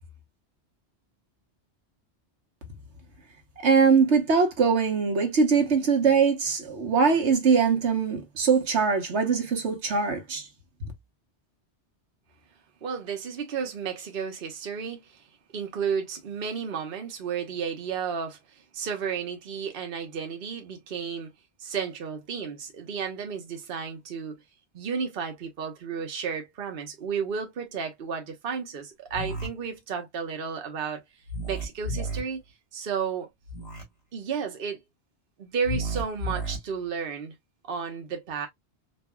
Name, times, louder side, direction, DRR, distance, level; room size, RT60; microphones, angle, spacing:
voice 1, 3.6-10.5, right 5 dB, 80° right, 1.3 m, -22 dB
voice 2, 12.8-15.2 15.5-18.4 18.7-21.3 21.6-24.4 24.7-31.0 31.5-32.4 32.7-33.3 34.1-34.8 35.4-37.3 37.7-38.5, right 6 dB, 55° right, 1.0 m, -32 dB
sound 1, 29.1-29.5 31.3-32.2 33.5-33.8 35.6-36.6, right 1 dB, 65° left, 2.3 m, -32 dB
4.2 x 2.6 x 2.2 m
omnidirectional pair, 1.2 m